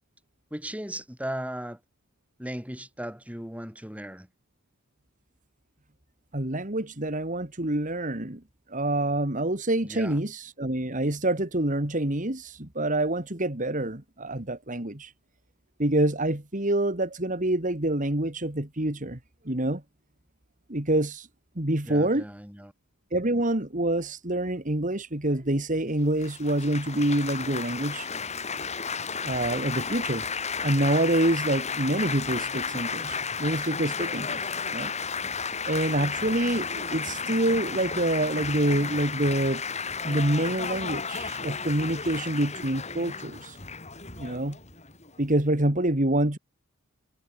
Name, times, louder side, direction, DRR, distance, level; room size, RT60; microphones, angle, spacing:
voice 1, 0.5-1.8 2.4-4.3 9.8-10.2 21.9-22.7, right 1 dB, 5° right, 6.2 m, -37 dB
voice 2, 6.3-8.4 8.7-15.1 15.8-19.2 19.5-19.8 20.7-21.3 21.6-22.3 23.1-28.1 29.2-30.2 30.6-34.9 35.7-39.6 40.0-43.6 44.2-44.6 45.2-46.4, right 1 dB, 35° right, 2.4 m, -26 dB
Laughter / Applause / Chatter, 26.2-45.3, left 5 dB, 30° left, 4.5 m, -33 dB
head